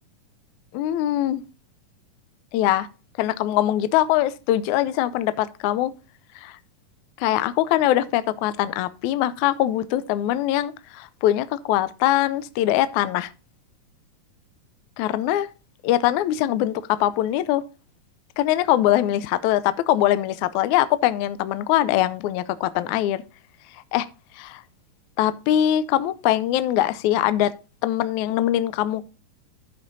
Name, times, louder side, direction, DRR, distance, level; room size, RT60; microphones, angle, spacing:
voice 1, 0.7-1.4 2.5-2.9 3.2-5.9 6.4-6.6 7.2-13.3 15.0-15.5 15.8-17.6 18.4-23.2 23.9-24.1 24.4-24.6 25.2-27.5 27.8-29.0, left 13 dB, 85° left, 1.8 m, -22 dB
13.5 x 5.1 x 4.0 m
omnidirectional pair, 4.0 m